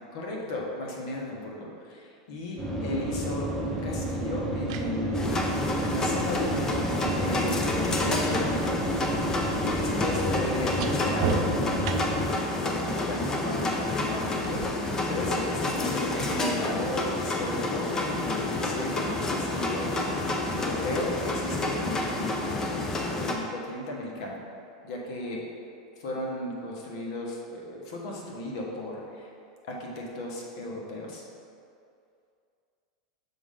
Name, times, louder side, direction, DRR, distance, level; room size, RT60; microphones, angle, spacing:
voice 1, 0.1-5.3 5.8-9.0 9.7-12.1 12.5-19.9 20.5-22.5 23.1-24.4 24.8-25.4 26.0-29.3 29.6-31.2, left 1 dB, 70° left, -2 dB, 1.3 m, -35 dB
sound 1, 2.6-12.3, right 1 dB, ahead, 1.1 m, -31 dB
sound 2, 4.5-8.4 8.6-12.4 14.4-14.6, right 7 dB, 65° right, 0.5 m, -37 dB
sound 3, 5.1-23.3, left 2 dB, 20° left, 0.6 m, -29 dB
6.1 x 4.8 x 3.8 m, 2.4 s
supercardioid pair, 140°, 3 cm